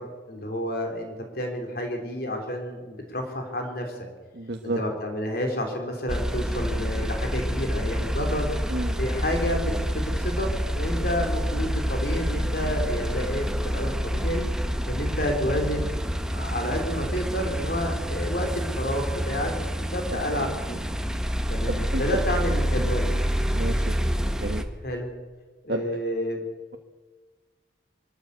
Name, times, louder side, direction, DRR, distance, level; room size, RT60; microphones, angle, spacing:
voice 1, 0.0-3.9 4.6-8.5 9.0-14.4 14.9-20.8 21.5-23.1 24.8-25.1 25.6-26.4, equal, 55° left, 3 dB, 3.6 m, -30 dB
voice 2, 4.3-4.8 8.7-9.0 20.1-20.8 21.7-22.2 22.8-22.9 23.5-24.0 24.4-24.7 25.7-25.8, right 1 dB, 70° right, 3 dB, 1.3 m, -31 dB
sound 1, 6.1-24.6, equal, 5° right, 1.2 m, -27 dB
23.5 x 14.0 x 8.2 m, 1.4 s
head